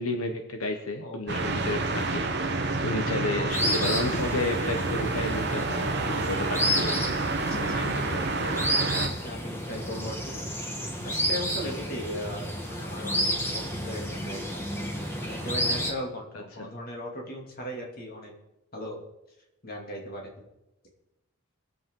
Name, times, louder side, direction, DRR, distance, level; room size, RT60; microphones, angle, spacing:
voice 1, 0.0-7.1 7.5-8.6 16.5-16.7, left 2 dB, 80° left, 4 dB, 1.2 m, -32 dB
sound 1, 1.3-9.1, right 3 dB, 50° right, 1.0 m, -29 dB
sound 2, 3.5-15.9, equal, 10° left, 1.3 m, -31 dB
voice 2, 7.5-8.1 8.8-10.4 11.0-13.3 13.5-14.7 15.2-18.3 18.7-19.0 19.6-20.4, equal, 45° left, 0 dB, 2.6 m, -38 dB
22.5 x 7.9 x 3.8 m, 0.93 s
head